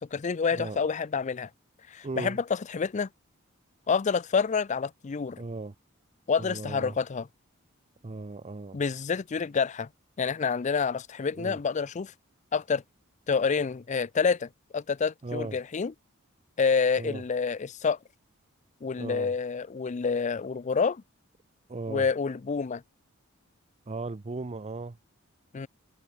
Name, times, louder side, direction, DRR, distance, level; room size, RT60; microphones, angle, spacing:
voice 1, 0.0-1.5 1.9-3.1 3.9-5.4 6.3-7.3 8.7-9.9 10.2-12.1 12.5-12.8 13.3-15.9 16.6-18.0 18.8-21.0 21.9-22.8 25.5-25.7, left 5 dB, 35° left, 0.4 m, -28 dB
voice 2, 2.0-2.4 5.4-5.7 6.4-7.0 8.0-8.8 11.3-11.6 15.2-15.6 17.0-17.2 19.0-19.3 21.7-22.1 23.9-25.0, right 3 dB, 30° right, 0.6 m, -37 dB
head